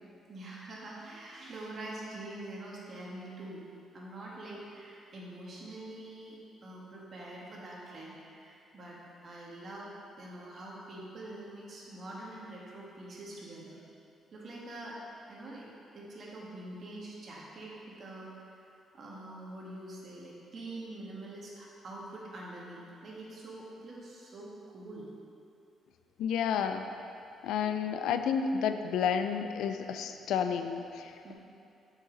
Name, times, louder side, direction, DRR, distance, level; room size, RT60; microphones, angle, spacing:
voice 1, 0.3-3.6 3.9-9.0 9.2-13.8 14.3-15.0 15.3-18.6 18.9-25.1 31.2-31.3, right 1 dB, 50° right, -4 dB, 1.6 m, -45 dB
voice 2, 26.2-26.9 27.4-31.3, left 7 dB, 85° left, 8 dB, 0.4 m, -31 dB
7.0 x 5.4 x 3.9 m, 2.6 s
cardioid pair, 90°, 0 cm